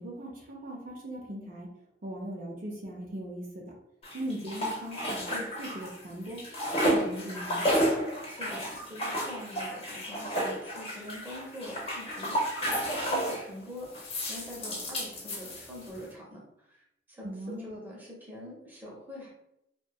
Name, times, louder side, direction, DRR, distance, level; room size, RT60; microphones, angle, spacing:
voice 1, 0.0-1.7 2.0-3.6 4.1-6.4 6.7-7.7 17.2-17.7, equal, 50° right, -1 dB, 0.5 m, -39 dB
sound 1, 4.0-6.0 6.3-13.5 13.9-16.0, equal, 35° left, 0.6 m, -31 dB
voice 2, 8.3-19.3, equal, 10° right, -4 dB, 0.6 m, -44 dB
2.7 x 2.2 x 2.2 m, 0.81 s
head